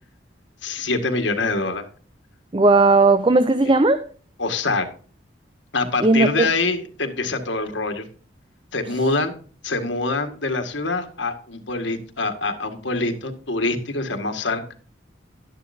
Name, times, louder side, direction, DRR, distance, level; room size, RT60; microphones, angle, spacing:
voice 1, 0.6-1.9 4.4-4.9 5.7-8.0 8.7-9.3 9.6-14.6, left 3 dB, 75° left, 1.9 m, -25 dB
voice 2, 2.5-4.0 6.0-6.5, right 3 dB, 25° right, 0.6 m, -16 dB
11.5 x 11.0 x 2.7 m
head